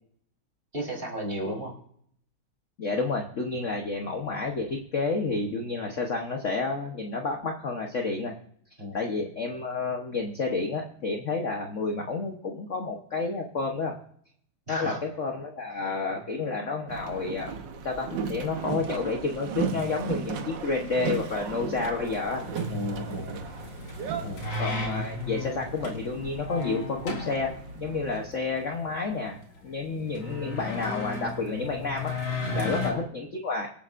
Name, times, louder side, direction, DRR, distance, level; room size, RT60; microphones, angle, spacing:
voice 1, 0.7-1.7 8.8-9.0 14.7-15.0 16.1-16.2 22.7-23.5 24.2-24.5 32.5-32.8, equal, 25° right, -2 dB, 3.9 m, -34 dB
voice 2, 2.8-8.3 8.9-14.0 14.7-17.5 17.8-22.5 24.6-33.7, left 3 dB, 45° left, 2 dB, 1.2 m, -30 dB
Boat Water vehicle, 16.9-28.3, right 6 dB, 65° right, 1.6 m, -36 dB
sound 1, 22.0-32.9, left 3 dB, 70° left, 3.1 m, -35 dB
25.0 x 9.1 x 2.6 m, 0.64 s
omnidirectional pair, 2.3 m